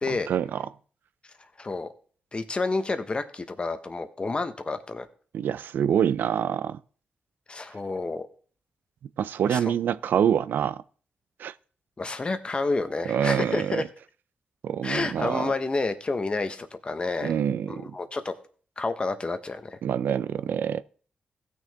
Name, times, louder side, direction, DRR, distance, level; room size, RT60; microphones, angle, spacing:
voice 1, 0.1-0.6 5.3-6.8 9.2-10.8 11.4-11.5 13.1-13.8 14.6-15.5 17.2-17.8 19.8-20.8, right 9 dB, 85° right, 0.4 m, -26 dB
voice 2, 1.6-1.9 2.3-5.1 7.5-8.3 9.5-9.6 12.0-13.8 14.8-17.3 17.7-18.3 18.8-19.8, left 3 dB, 30° left, 1.1 m, -29 dB
16.5 x 6.4 x 3.5 m
cardioid pair, 90°, 3 cm